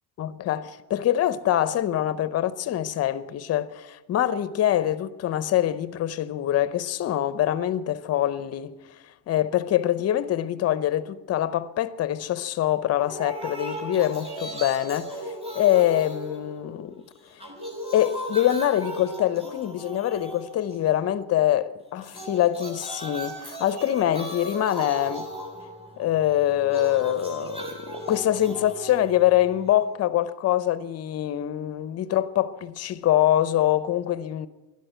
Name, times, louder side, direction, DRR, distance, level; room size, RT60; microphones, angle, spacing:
voice 1, 0.2-8.8 9.0-17.0 17.3-17.4 17.9-25.3 26.0-34.5, left 12 dB, 35° left, 0.6 m, -24 dB
sound 1, 13.0-17.0 17.3-21.0 22.0-30.0, right 1 dB, 10° right, 3.2 m, -37 dB
12.5 x 11.5 x 9.1 m
cardioid pair, 150°, 47 cm